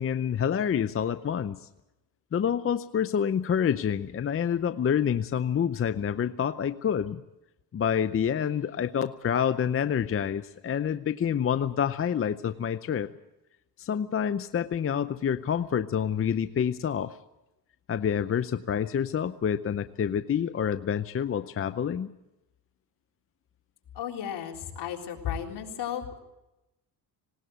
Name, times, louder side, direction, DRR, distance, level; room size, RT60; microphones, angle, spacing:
voice 1, 0.0-1.7 2.3-7.2 7.7-13.1 13.8-17.2 17.9-22.1, left 8 dB, 30° left, 12 dB, 0.7 m, -27 dB
voice 2, 24.0-26.2, left 9 dB, 70° left, 1 dB, 3.9 m, -34 dB
19.5 x 18.5 x 7.9 m, 0.94 s
cardioid pair, 110°, 42 cm